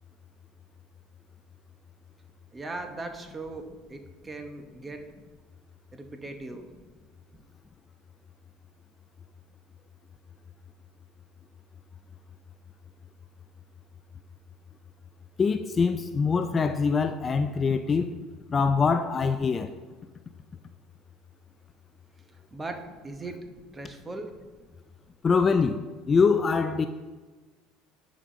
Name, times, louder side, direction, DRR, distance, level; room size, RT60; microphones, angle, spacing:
voice 1, 2.5-3.6 3.9-5.0 5.9-6.7 22.3-23.4 23.7-24.3, right 2 dB, 20° right, 0.8 m, -39 dB
voice 2, 15.4-18.1 18.5-19.7 25.2-26.9, left 5 dB, 30° left, 0.3 m, -24 dB
9.2 x 5.1 x 3.7 m
supercardioid pair, 115°, 0 cm